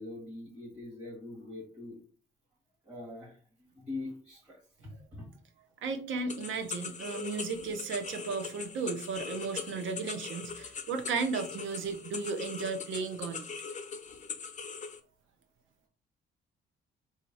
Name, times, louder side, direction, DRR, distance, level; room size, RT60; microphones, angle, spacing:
voice 1, 0.0-2.0 2.9-5.3, left 2 dB, 30° right, 2.3 m, -43 dB
voice 2, 5.8-13.5, right 4 dB, 80° right, 0.9 m, -35 dB
sound 1, 6.3-15.0, left 5 dB, 40° left, 0.7 m, -41 dB
3.7 x 2.8 x 4.7 m
cardioid pair, 90°, 20 cm